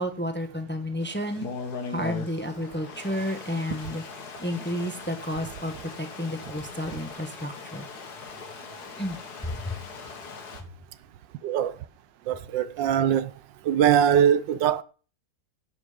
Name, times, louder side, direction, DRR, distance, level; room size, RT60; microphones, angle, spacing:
voice 1, 0.0-1.5 1.9-4.0 4.4-7.9 9.0-9.2 9.4-9.8, left 1 dB, 5° left, 1.0 m, -31 dB
Stream, 1.0-10.6, left 4 dB, 60° left, 2.0 m, -40 dB
voice 2, 11.4-11.8 12.3-13.3 13.6-14.8, right 9 dB, 80° right, 1.4 m, -22 dB
11.5 x 7.5 x 5.1 m
omnidirectional pair, 2.0 m